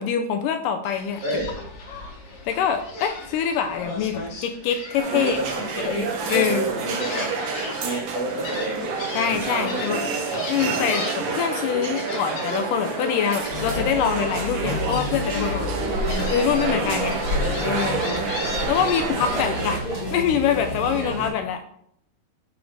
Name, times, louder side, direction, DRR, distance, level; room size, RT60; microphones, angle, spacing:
voice 1, 0.0-1.2 2.5-5.4 5.9-6.6 9.2-10.0 10.5-15.7 16.3-17.2 17.6-18.1 18.7-19.8 20.1-21.6, left 8 dB, 80° left, 7 dB, 2.0 m, -24 dB
Gull seagull, 0.8-19.9, left 2 dB, 50° left, 2.0 m, -37 dB
voice 2, 1.2-1.5 5.1-6.0 6.3-7.5 7.8-9.0 9.5-10.1 15.8-16.1 18.5-19.4, right 2 dB, 80° right, -3 dB, 4.2 m, -30 dB
sound 1, 5.0-19.8, right 4 dB, 60° right, 1.8 m, -29 dB
sound 2, 13.5-21.3, left 1 dB, 20° right, 1.6 m, -30 dB
11.5 x 6.1 x 3.6 m, 0.70 s
omnidirectional pair, 4.2 m